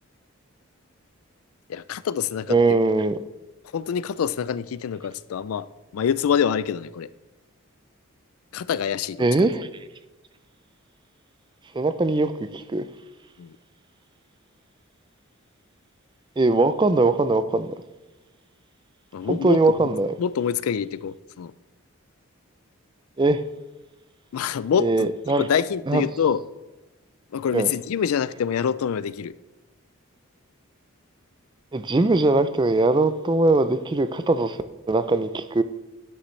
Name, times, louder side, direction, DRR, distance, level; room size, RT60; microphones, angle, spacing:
voice 1, 1.7-2.8 3.7-5.7 5.9-7.1 8.5-9.5 13.4-13.5 19.1-19.9 20.2-21.5 24.3-25.1 25.4-26.4 27.3-29.3, left 7 dB, 85° left, 0.4 m, -26 dB
voice 2, 2.5-3.2 9.2-9.7 11.7-12.9 16.4-17.7 19.3-20.1 23.2-23.4 24.8-25.4 25.9-26.0 27.5-27.7 31.7-34.6 34.9-35.6, right 2 dB, 20° right, 0.3 m, -21 dB
9.6 x 8.6 x 3.2 m
head